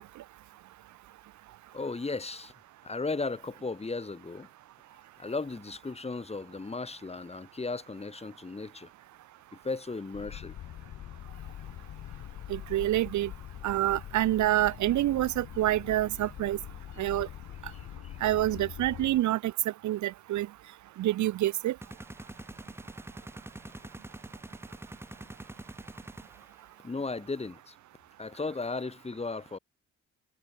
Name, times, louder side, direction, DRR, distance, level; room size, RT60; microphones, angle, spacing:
voice 1, 1.7-2.5 2.8-4.5 5.2-8.9 9.6-10.5 17.7-18.2 26.8-27.8 28.2-29.6, left 3 dB, 20° left, 1.7 m, -36 dB
sound 1, 10.1-19.2, left 12 dB, 70° left, 2.2 m, -43 dB
voice 2, 12.5-13.3 13.6-16.6 17.0-17.3 18.2-19.5 19.8-20.5 21.0-21.7, right 14 dB, 75° right, 0.8 m, -27 dB
sound 2, 21.8-26.7, right 1 dB, 10° right, 3.5 m, -45 dB
cardioid pair, 90°, 30 cm